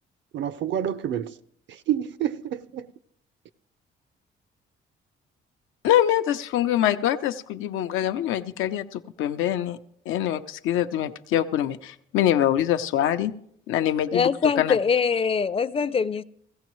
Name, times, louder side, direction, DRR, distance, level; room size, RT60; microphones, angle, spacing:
voice 1, 0.3-1.4 1.7-2.9, right 10 dB, 65° right, 0.6 m, -28 dB
voice 2, 5.8-9.8 10.1-13.3 13.7-14.3 14.6-14.8, left 11 dB, 90° left, 0.6 m, -24 dB
voice 3, 14.1-16.2, left 6 dB, 30° left, 0.4 m, -23 dB
16.5 x 15.0 x 3.1 m
cardioid pair, 90°, 20 cm